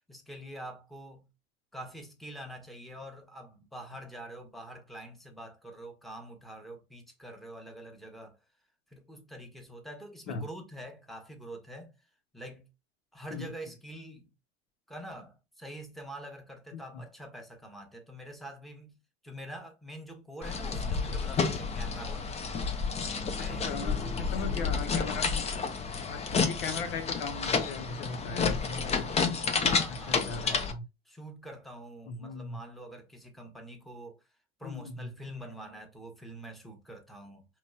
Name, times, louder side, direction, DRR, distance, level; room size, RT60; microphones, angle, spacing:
voice 1, 0.1-1.3 1.7-8.4 8.9-11.9 12.3-12.7 13.1-14.3 14.9-22.4 23.1-23.6 24.0-24.9 29.5-30.7 31.1-34.2 34.6-37.5, right 1 dB, ahead, 1.1 m, -45 dB
voice 2, 16.7-17.0 23.4-25.4 26.1-29.1 29.9-30.8 32.1-32.6 34.6-35.1, left 4 dB, 65° left, 0.7 m, -38 dB
sound 1, 20.4-30.7, left 5 dB, 20° left, 0.6 m, -30 dB
5.0 x 3.0 x 2.3 m
figure-of-eight pair, 75°, 31 cm